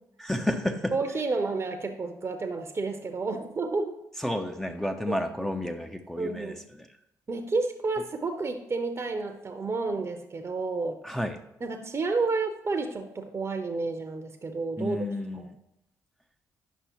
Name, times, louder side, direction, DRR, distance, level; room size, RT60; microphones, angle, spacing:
voice 1, 0.2-0.9 4.2-6.9 11.0-11.4 14.8-15.6, left 1 dB, 5° left, 4 dB, 0.7 m, -31 dB
voice 2, 0.9-3.9 6.2-6.6 7.3-11.0 11.6-15.0 15.3-15.4, right 3 dB, 30° right, 6 dB, 0.8 m, -30 dB
9.2 x 6.1 x 3.1 m, 0.84 s
figure-of-eight pair, 45°, 9 cm